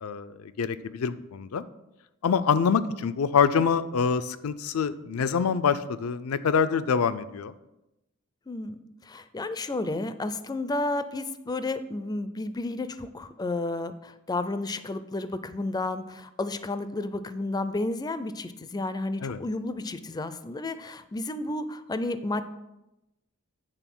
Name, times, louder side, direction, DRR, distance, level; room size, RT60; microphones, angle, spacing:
voice 1, 0.0-1.6 2.2-7.5 19.2-19.4, left 6 dB, 85° left, 14 dB, 0.4 m, -25 dB
voice 2, 8.5-22.4, left 2 dB, 20° left, 12 dB, 0.4 m, -32 dB
9.2 x 3.7 x 6.0 m, 0.94 s
head